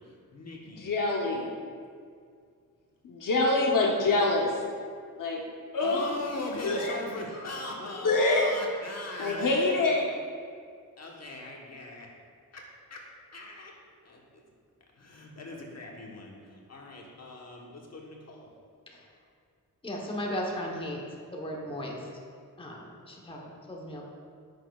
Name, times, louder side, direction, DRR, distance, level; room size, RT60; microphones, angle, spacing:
voice 1, 0.0-0.9 5.8-9.9 11.0-12.1 12.5-13.1 13.3-13.7 14.0-14.4 15.0-18.5, left 2 dB, 50° left, -1 dB, 1.2 m, -40 dB
voice 2, 0.8-1.5 3.0-4.6 5.2-5.4 5.7-6.1 6.6-6.9 8.0-8.5 9.2-10.1, left 2 dB, 65° left, -1 dB, 0.9 m, -25 dB
voice 3, 19.8-21.0 21.3-22.0 22.6-24.0, equal, 15° left, -2 dB, 1.0 m, -36 dB
9.8 x 6.3 x 2.4 m, 2.2 s
wide cardioid pair, 115°, 35 cm